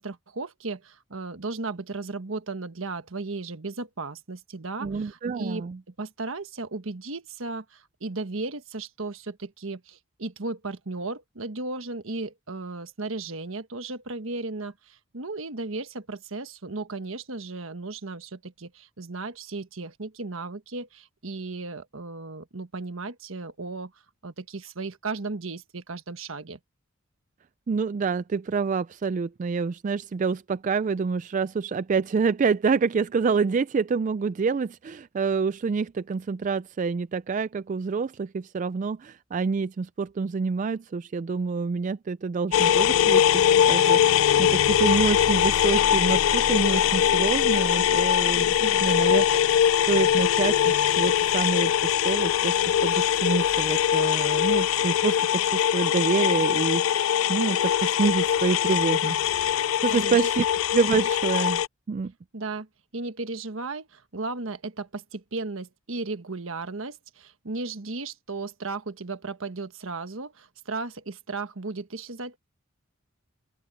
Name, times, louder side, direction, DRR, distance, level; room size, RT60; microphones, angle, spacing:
voice 1, 0.0-5.7 6.0-23.9 24.2-26.6 48.6-48.9 59.9-60.2 62.3-62.7 62.9-72.4, right 3 dB, 75° right, 1.4 m, -35 dB
voice 2, 4.8-5.8 27.7-43.3 43.7-49.6 49.9-55.2 55.4-59.2 59.5-60.5 60.7-61.6 61.9-62.1, right 5 dB, 35° right, 0.3 m, -27 dB
sound 1, 42.5-61.7, left 9 dB, 75° left, 0.4 m, -22 dB
open air
head